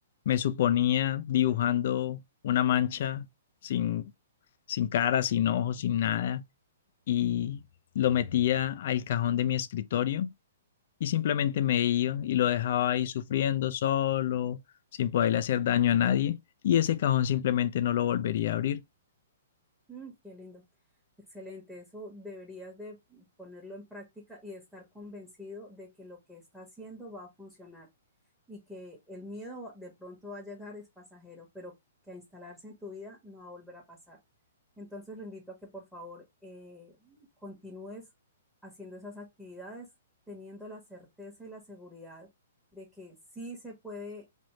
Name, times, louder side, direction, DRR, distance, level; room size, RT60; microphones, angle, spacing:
voice 1, 0.3-3.3 3.6-4.1 4.7-6.4 7.1-7.6 7.9-10.3 11.0-14.6 15.0-16.4 16.6-18.8, left 11 dB, 60° left, 0.5 m, -27 dB
voice 2, 19.9-20.6 21.3-27.9 28.5-31.7 32.1-34.2 34.8-38.1 38.6-39.9 40.3-42.3 42.7-44.3, left 1 dB, ahead, 1.2 m, -45 dB
3.4 x 2.6 x 3.0 m
hypercardioid pair, 135°, 0 cm